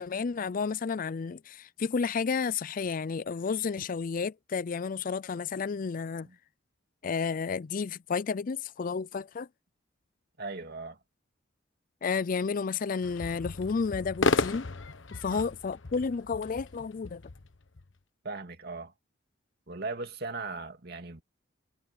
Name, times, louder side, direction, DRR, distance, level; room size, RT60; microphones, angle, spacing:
voice 1, 0.0-6.3 7.0-9.5 12.0-14.7 15.1-17.2, left 5 dB, 45° left, 0.4 m, -31 dB
voice 2, 10.4-11.0 15.2-15.5 18.2-18.9 19.7-21.2, right 3 dB, 55° right, 2.4 m, -38 dB
sound 1, 13.0-17.9, left 3 dB, 85° left, 1.3 m, -33 dB
head